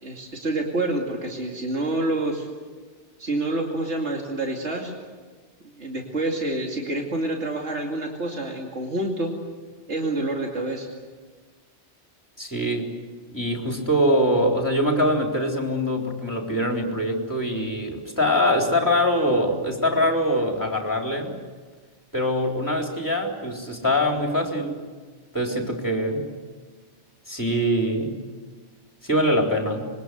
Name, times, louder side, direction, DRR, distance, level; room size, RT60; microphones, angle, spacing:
voice 1, 0.0-2.5 3.2-4.9 5.8-9.3 9.9-10.9, right 2 dB, 75° right, 0 dB, 2.9 m, -27 dB
voice 2, 12.4-13.0 13.3-21.3 22.1-24.8 25.3-26.3 27.3-28.2 29.0-29.9, equal, 15° left, 1 dB, 3.6 m, -23 dB
26.0 x 23.0 x 8.1 m, 1.5 s
omnidirectional pair, 1.2 m